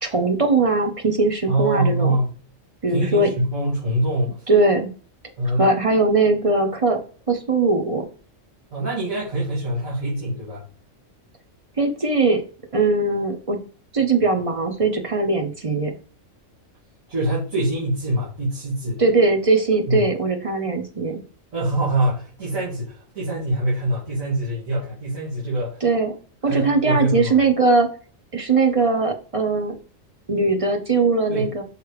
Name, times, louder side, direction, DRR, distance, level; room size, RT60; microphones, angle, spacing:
voice 1, 0.0-2.2 2.8-3.3 4.5-4.9 5.5-7.0 7.3-8.1 11.8-12.4 12.7-13.6 13.9-15.9 19.0-21.2 25.8-26.2 26.4-27.9 28.3-29.7 30.3-31.6, right 3 dB, 35° right, 4 dB, 0.6 m, -20 dB
voice 2, 1.5-2.3 2.9-4.4 5.4-5.7 8.7-10.6 17.1-19.0 19.9-20.0 21.5-25.8 26.4-27.3 31.3-31.5, right 1 dB, 80° right, -8 dB, 2.7 m, -24 dB
6.5 x 3.3 x 4.7 m, 0.39 s
omnidirectional pair, 1.4 m